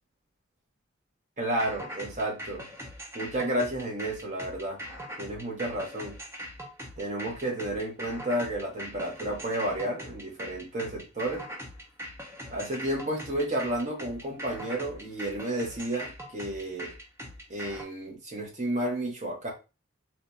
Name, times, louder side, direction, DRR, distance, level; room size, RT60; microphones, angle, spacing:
voice 1, 1.4-2.6 3.1-4.8 5.2-6.2 7.0-11.4 12.5-16.9 17.5-19.5, right 1 dB, 35° right, -1 dB, 1.3 m, -31 dB
sound 1, 1.6-17.8, equal, 15° right, 0.7 m, -41 dB
4.1 x 3.1 x 2.7 m, 0.30 s
head